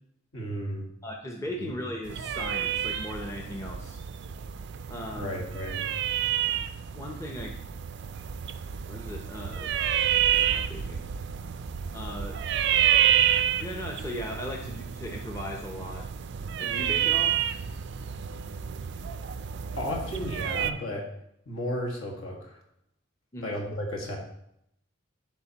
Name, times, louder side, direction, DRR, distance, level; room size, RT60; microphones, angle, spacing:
voice 1, 0.3-0.9 1.6-1.7 5.2-5.8 19.7-21.1 21.4-22.6 23.4-24.2, equal, 70° left, -1 dB, 1.6 m, -33 dB
voice 2, 1.0-4.0 4.9-5.3 6.9-7.6 8.9-9.7 10.3-11.1 11.9-12.4 13.6-16.1 16.6-17.4 23.3-23.6, left 1 dB, 15° left, 0 dB, 0.6 m, -37 dB
sound 1, 2.1-20.7, right 10 dB, 55° right, 0.3 m, -29 dB
11.5 x 3.9 x 2.9 m, 0.75 s
head